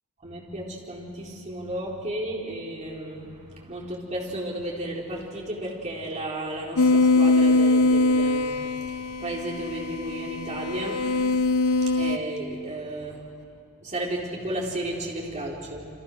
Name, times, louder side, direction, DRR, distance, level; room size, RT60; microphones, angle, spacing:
voice 1, 0.2-11.0 11.7-13.3 13.8-15.9, right 1 dB, 30° right, -3 dB, 4.2 m, -33 dB
sound 1, 6.8-12.2, left 3 dB, 85° left, 0.8 m, -22 dB
29.5 x 25.5 x 6.5 m, 2.4 s
head